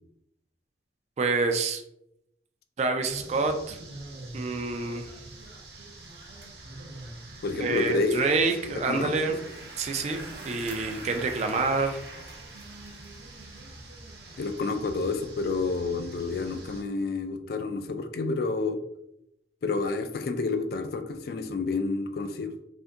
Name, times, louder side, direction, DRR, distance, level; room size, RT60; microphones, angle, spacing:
voice 1, 1.2-1.8 2.8-3.8 4.3-5.1 7.6-9.4 9.8-12.0, right 3 dB, 40° right, 6 dB, 0.3 m, -27 dB
sound 1, 3.0-16.8, right 2 dB, 60° right, 0.7 m, -44 dB
voice 2, 7.4-8.2 8.7-9.4 14.4-18.8 19.6-22.5, left 3 dB, 55° left, 7 dB, 0.3 m, -29 dB
2.5 x 2.5 x 3.4 m, 0.79 s
head